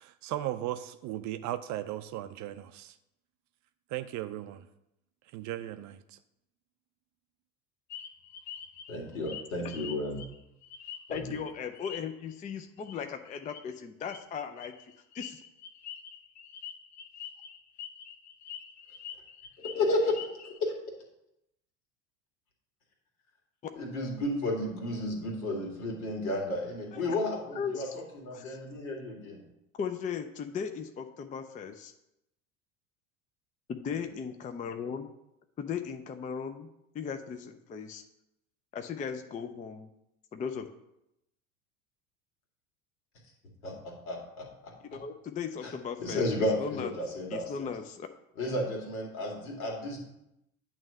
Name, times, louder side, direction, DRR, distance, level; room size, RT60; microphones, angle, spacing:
voice 1, 0.0-3.0 3.9-4.7 5.3-6.2, right 13 dB, 40° right, 11 dB, 0.5 m, -37 dB
sound 1, 7.9-11.4 11.7-12.3 12.8-13.0 13.3-13.6 14.1-20.6, left 8 dB, 40° left, 0.8 m, -45 dB
voice 2, 8.9-10.2 11.1-11.2 19.8-20.1 23.7-29.4 43.6-44.7 45.6-45.7 46.0-47.7 48.4-50.1, left 1 dB, 70° left, 0 dB, 2.2 m, -32 dB
voice 3, 11.1-14.7 15.1-15.4 26.9-27.9 28.3-28.6 29.8-31.9 33.7-35.1 35.6-38.0 38.7-39.9 40.3-40.7 44.9-46.2 46.6-46.9 47.3-48.1, left 6 dB, 20° left, 7 dB, 0.5 m, -37 dB
8.8 x 3.2 x 6.4 m, 0.85 s
hypercardioid pair, 75°, 44 cm